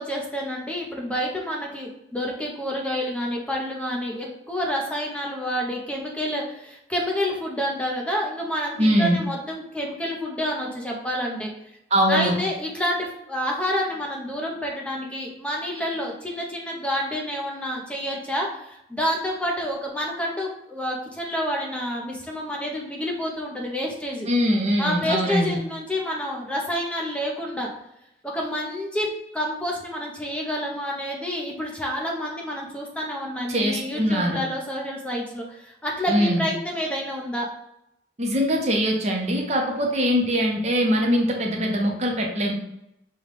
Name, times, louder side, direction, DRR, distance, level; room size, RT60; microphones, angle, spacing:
voice 1, 0.0-11.5 12.1-24.3 24.8-27.7 28.2-37.5, equal, 5° left, -1 dB, 0.6 m, -28 dB
voice 2, 8.8-9.2 11.9-12.4 24.3-25.6 33.5-34.4 36.1-36.4 38.2-42.5, equal, 35° right, 1 dB, 0.6 m, -22 dB
5.1 x 2.2 x 3.3 m, 0.80 s
head